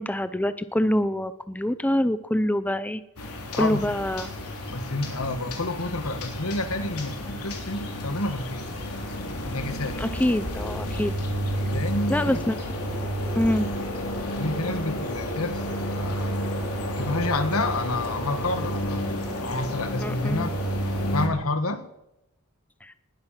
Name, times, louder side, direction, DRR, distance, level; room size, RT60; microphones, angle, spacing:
voice 1, 0.0-3.0 3.5-4.3 10.0-11.1 12.1-12.5 13.4-13.7 20.0-20.5 22.8-22.9, left 1 dB, 5° left, 13 dB, 0.5 m, -25 dB
sound 1, 3.2-21.3, equal, 90° left, 3.3 m, -31 dB
voice 2, 3.6-3.9 4.7-8.7 9.4-10.1 11.7-12.4 14.1-16.3 17.0-19.0 19.4-20.5 21.1-21.8, left 2 dB, 70° left, 10 dB, 1.7 m, -29 dB
19.5 x 12.5 x 5.9 m, 0.87 s
head